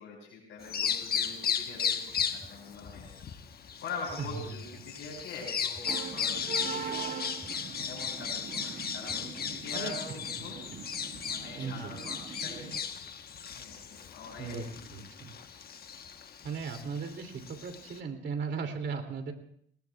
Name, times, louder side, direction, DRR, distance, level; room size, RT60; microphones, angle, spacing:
voice 1, 0.0-3.2 3.8-7.2 7.8-10.5 11.2-13.0 13.4-14.7, left 4 dB, 80° left, -4 dB, 5.6 m, -44 dB
Bird vocalization bird call bird song, 0.6-18.0, left 7 dB, 50° left, 1.2 m, -36 dB
sound 1, 2.4-2.5 3.0-3.1 4.1-4.2 4.7-4.8 5.7-5.8 6.4-6.5 7.4-7.5 8.0-8.1 9.1-9.2 9.7-9.8, right 1 dB, 5° right, 1.4 m, -51 dB
voice 2, 4.2-4.5 9.7-9.9 11.6-11.9 14.4-14.6 14.9-15.3 16.4-19.3, right 5 dB, 65° right, 5 dB, 2.8 m, -37 dB
sound 2, 5.9-12.8, right 8 dB, 45° right, 1.0 m, -42 dB
26.0 x 19.5 x 2.4 m, 0.66 s
cardioid pair, 90°, 20 cm